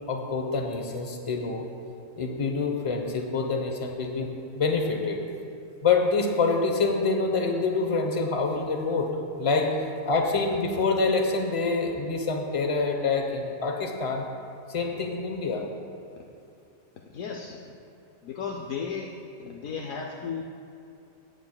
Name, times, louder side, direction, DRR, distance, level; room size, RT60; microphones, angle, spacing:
voice 1, 0.1-1.7 2.2-5.2 5.8-9.1 9.4-14.2 14.7-15.6, left 4 dB, 30° left, 2 dB, 0.8 m, -26 dB
voice 2, 17.1-17.6 18.2-20.4, left 6 dB, 75° left, 1 dB, 1.0 m, -35 dB
16.5 x 7.9 x 2.2 m, 2.6 s
omnidirectional pair, 1.4 m